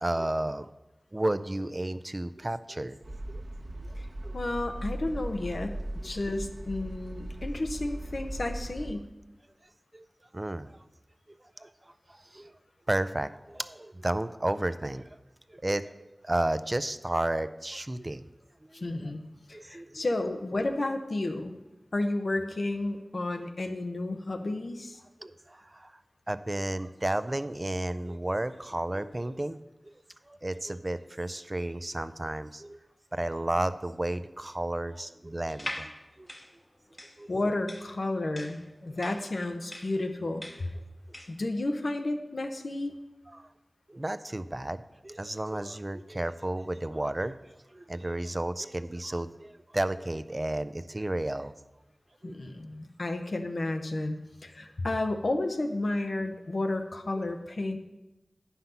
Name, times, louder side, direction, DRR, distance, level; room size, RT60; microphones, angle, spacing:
voice 1, 0.0-0.7 1.1-3.0 3.3-3.4 4.2-4.3 6.0-6.1 8.9-9.0 9.9-10.0 10.3-10.8 11.6-11.7 12.1-12.5 12.9-15.1 15.5-15.9 16.2-18.2 18.6-18.9 19.5-20.0 25.2-25.9 26.3-29.6 29.8-29.9 30.3-32.8 33.1-35.9 36.2-36.3 37.2-37.3 43.3-43.5 43.9-47.4 47.7-51.5 52.2-52.3, right 1 dB, 35° right, 12 dB, 0.4 m, -32 dB
sound 1, 3.0-8.9, right 1 dB, 65° right, 1.1 m, -38 dB
voice 2, 4.3-9.1 18.7-19.2 19.5-21.5 21.9-25.0 37.3-40.7 41.3-43.0 52.2-57.8, left 2 dB, 75° left, 6 dB, 0.8 m, -32 dB
sound 2, 35.5-41.4, left 1 dB, 40° left, 1.0 m, -42 dB
9.1 x 5.7 x 5.7 m, 1.0 s
wide cardioid pair, 40°, 0 cm